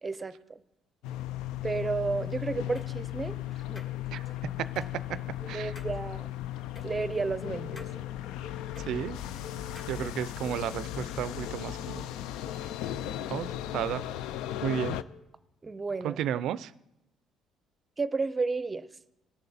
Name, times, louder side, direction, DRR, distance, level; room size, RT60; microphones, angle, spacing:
voice 1, 0.0-0.6 1.6-3.4 3.7-3.8 5.5-6.3 6.8-7.9 15.6-16.2 18.0-18.9, right 4 dB, 25° right, 15 dB, 0.6 m, -32 dB
sound 1, 1.0-15.0, left 12 dB, 85° left, 0.4 m, -36 dB
sound 2, 2.7-2.9 3.7-4.3 4.7-4.9 5.7-6.0 6.7-6.9 7.7-7.9 8.7-8.9 9.7-10.0, left 1 dB, 35° left, 1.7 m, -49 dB
Telephone, 7.4-7.9 8.4-8.9 9.4-10.0 10.4-11.0 11.5-12.0 12.5-13.0 13.5-14.0 14.5-15.0, left 10 dB, 55° left, 1.6 m, -45 dB
voice 2, 8.8-9.2 9.9-12.1 13.3-14.0 14.6-15.0 16.0-16.7, right 10 dB, 70° right, 17 dB, 0.4 m, -33 dB
19.0 x 6.6 x 4.1 m, 0.86 s
cardioid pair, 95°, 0 cm